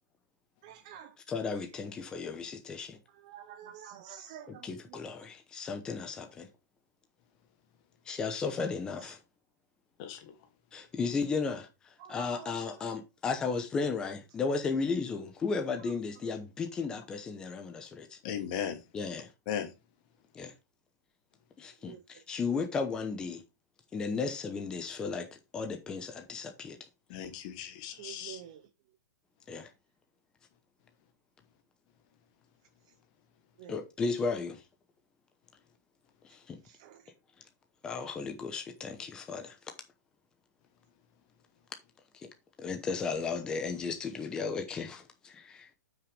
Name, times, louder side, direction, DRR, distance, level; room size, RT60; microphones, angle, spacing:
voice 1, 0.6-1.1 3.3-4.5 12.0-12.5 21.9-22.0 28.0-28.6 33.6-33.7, right 10 dB, 20° right, 0.4 m, -47 dB
voice 2, 1.3-3.0 4.5-6.5 8.1-9.2 10.7-11.7 12.1-18.2 18.9-19.3 20.3-20.5 21.6-23.4 23.9-25.3 25.5-26.8 29.5-29.7 33.7-34.6 36.3-36.6 37.8-39.6 42.2-42.3 42.6-45.7, left 4 dB, 5° left, 0.8 m, -34 dB
voice 3, 18.2-18.8 19.5-19.7 27.1-28.4, left 9 dB, 25° left, 1.1 m, -37 dB
9.1 x 5.9 x 3.3 m
hypercardioid pair, 180°, 10 cm